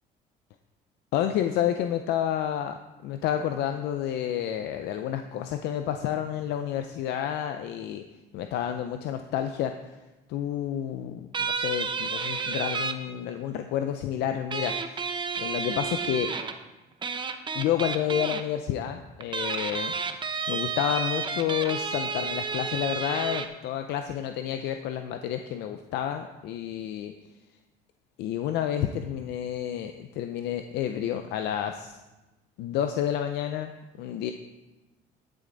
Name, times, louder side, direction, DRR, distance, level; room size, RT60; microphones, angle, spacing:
voice 1, 1.1-8.0 8.3-9.9 10.3-15.0 15.4-16.3 17.5-20.2 20.5-27.1 28.2-32.0 32.6-33.7 34.0-34.3, left 10 dB, 85° left, 7 dB, 0.6 m, -30 dB
sound 1, 11.3-12.9 14.5-16.6 17.0-18.4 19.2-23.5, right 5 dB, 30° right, 0.8 m, -31 dB
11.0 x 9.2 x 4.0 m, 1.1 s
cardioid pair, 110°, 17 cm